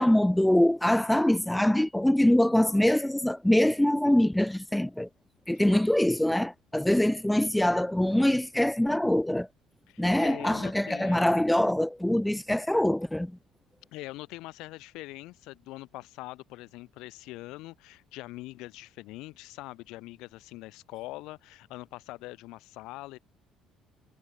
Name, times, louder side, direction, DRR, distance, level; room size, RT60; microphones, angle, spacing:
voice 1, 0.0-5.1 5.5-9.5 10.0-13.4, left 1 dB, 5° left, 0.5 m, -24 dB
voice 2, 9.9-11.3 13.9-23.2, left 19 dB, 85° left, 1.9 m, -43 dB
cardioid pair, 125°, 0 cm